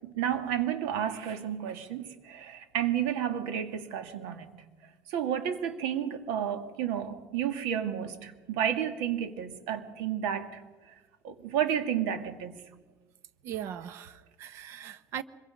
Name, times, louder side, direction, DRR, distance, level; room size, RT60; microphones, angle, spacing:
voice 1, 0.0-4.5 5.1-10.9 11.2-12.6, right 9 dB, 85° right, 2.1 m, -31 dB
voice 2, 13.4-15.2, right 10 dB, 45° right, 0.9 m, -39 dB
25.0 x 22.5 x 5.3 m
cardioid pair, 165°, 6 cm